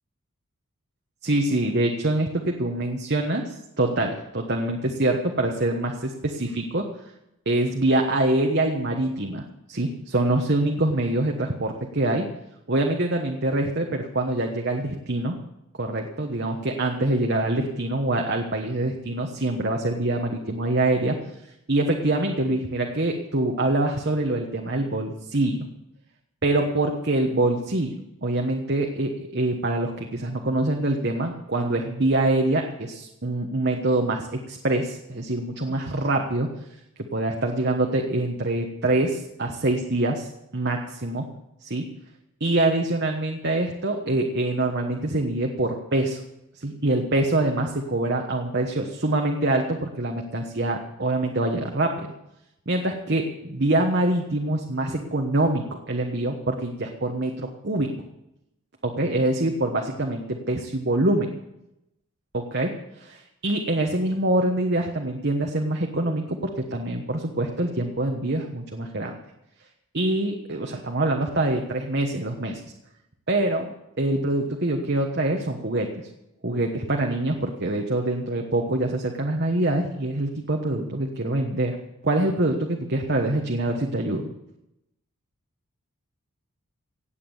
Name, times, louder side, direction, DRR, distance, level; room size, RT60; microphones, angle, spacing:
voice 1, 1.2-6.9 7.4-12.3 12.7-15.3 15.8-21.2 21.7-25.6 26.4-36.5 37.1-41.2 41.6-41.8 42.4-46.2 46.6-52.1 52.7-57.9 58.8-61.3 62.3-69.2 69.9-72.6 73.3-73.7 74.0-76.0 76.4-81.8 82.0-84.3, right 2 dB, 50° right, 2 dB, 1.3 m, -25 dB
17.5 x 8.5 x 7.2 m, 0.87 s
head